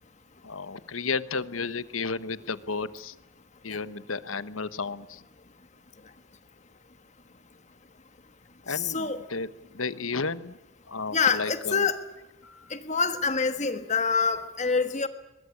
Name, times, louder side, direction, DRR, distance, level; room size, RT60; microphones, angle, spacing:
voice 1, 0.4-3.1 3.6-5.2 8.7-9.5 9.7-10.6 10.9-11.8 12.4-12.7, left 4 dB, 80° left, 15 dB, 1.1 m, -33 dB
voice 2, 8.7-9.2 11.1-12.0 12.7-15.1, left 5 dB, 35° left, 9 dB, 1.4 m, -26 dB
23.0 x 21.5 x 8.6 m, 1.0 s
head